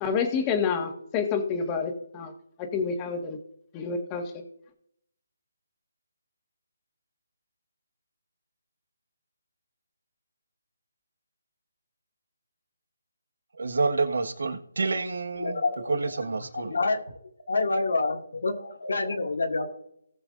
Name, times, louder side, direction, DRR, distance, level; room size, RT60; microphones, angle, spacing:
voice 1, 0.0-2.3 2.7-3.4 3.7-4.2, left 5 dB, 20° left, 4 dB, 1.6 m, -28 dB
voice 2, 13.6-15.6 15.8-16.7, right 4 dB, 75° right, 6 dB, 1.5 m, -28 dB
voice 3, 15.4-17.0 17.5-19.7, left 3 dB, 75° left, 3 dB, 2.1 m, -28 dB
18.5 x 6.9 x 2.6 m, 0.72 s
figure-of-eight pair, 160°, 0 cm